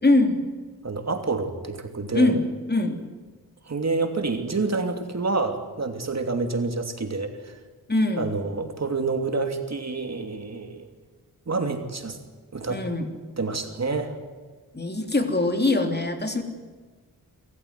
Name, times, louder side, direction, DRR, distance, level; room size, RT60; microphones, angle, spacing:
voice 1, 0.0-0.4 2.1-2.4 2.7-3.0 7.9-8.3 12.7-13.1 14.7-16.4, left 2 dB, 25° left, 5 dB, 3.3 m, -22 dB
voice 2, 0.8-2.4 3.7-7.6 8.2-10.9 11.5-12.2 12.5-12.8 13.4-14.1, right 3 dB, 45° right, 6 dB, 2.9 m, -28 dB
26.5 x 14.5 x 9.6 m, 1.4 s
cardioid pair, 75°, 37 cm